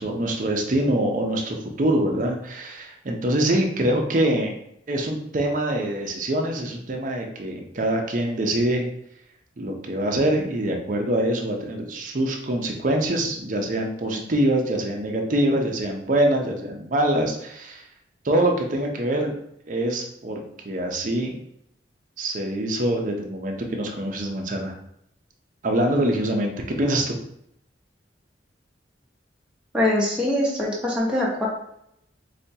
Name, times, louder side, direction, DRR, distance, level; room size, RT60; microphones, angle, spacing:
voice 1, 0.0-4.6 4.9-8.9 9.6-17.8 18.2-19.4 19.7-21.4 22.2-24.7 25.6-26.5 26.8-27.1, right 1 dB, 45° right, 2 dB, 0.5 m, -24 dB
voice 2, 29.7-31.5, left 1 dB, 5° right, -5 dB, 0.8 m, -23 dB
4.1 x 2.2 x 2.7 m, 0.77 s
head